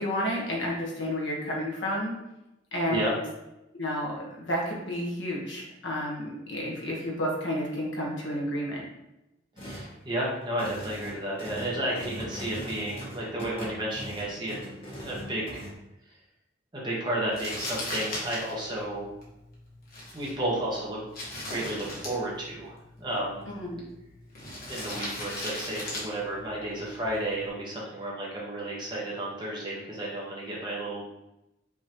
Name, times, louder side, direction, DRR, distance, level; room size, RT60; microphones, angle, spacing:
voice 1, 0.0-2.1 2.7-3.2 3.8-8.8 23.5-23.8, equal, 80° left, -3 dB, 1.3 m, -31 dB
sound 1, 9.6-9.9 10.4-15.7, equal, 30° left, 1.3 m, -40 dB
voice 2, 9.6-14.5 15.0-15.7 16.7-19.1 20.1-21.0 21.5-23.4 24.7-31.2, right 1 dB, 25° right, -5 dB, 1.2 m, -32 dB
Crumpling crinkling, 17.3-27.5, left 1 dB, 50° left, 1.3 m, -39 dB
5.5 x 3.0 x 3.0 m, 0.92 s
head